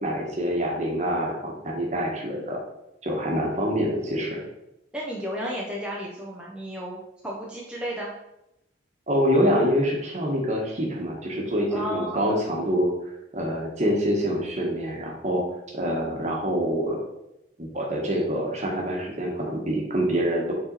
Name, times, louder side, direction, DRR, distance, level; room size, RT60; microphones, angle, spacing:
voice 1, 0.0-2.6 3.0-4.4 9.1-12.9 13.3-15.4 15.7-17.0 17.6-20.5, equal, 35° right, -1 dB, 1.3 m, -26 dB
voice 2, 4.9-7.0 7.2-8.1 11.7-12.2, equal, 5° right, -5 dB, 0.7 m, -33 dB
5.9 x 4.1 x 4.0 m, 0.86 s
head